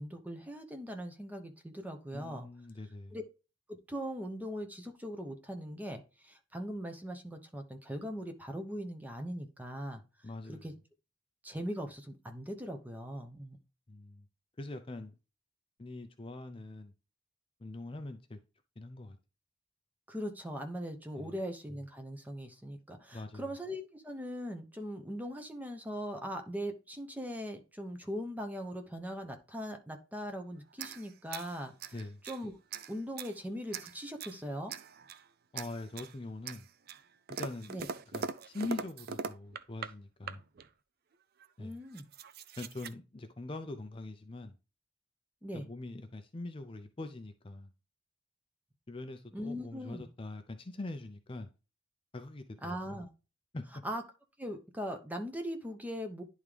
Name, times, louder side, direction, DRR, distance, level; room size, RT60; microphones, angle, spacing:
voice 1, 0.0-2.5 3.1-3.2 3.9-10.0 10.5-10.7 11.4-13.6 20.1-31.9 32.2-32.5 32.9-34.7 37.7-37.9 41.6-42.1 45.4-45.7 49.3-50.0 52.6-53.1 53.8-54.0 54.4-56.2, equal, 10° right, 0.9 m, -40 dB
voice 2, 2.1-3.2 10.2-10.7 13.9-14.3 14.6-15.1 15.8-16.9 17.6-18.4 18.8-19.2 21.2-21.3 23.1-23.5 31.9-32.2 35.5-36.7 37.4-37.7 38.1-40.4 41.6-41.8 42.6-44.6 45.5-47.7 48.9-51.5 52.1-53.0 53.5-53.6, left 2 dB, 30° left, 0.5 m, -43 dB
sound 1, 30.7-32.4 32.7-33.4 33.7-34.4 34.7-35.3 35.6-36.1 36.5-39.9 40.2-40.7 41.4-41.5 41.7-42.9, right 5 dB, 55° right, 0.4 m, -42 dB
10.5 x 3.6 x 3.3 m
head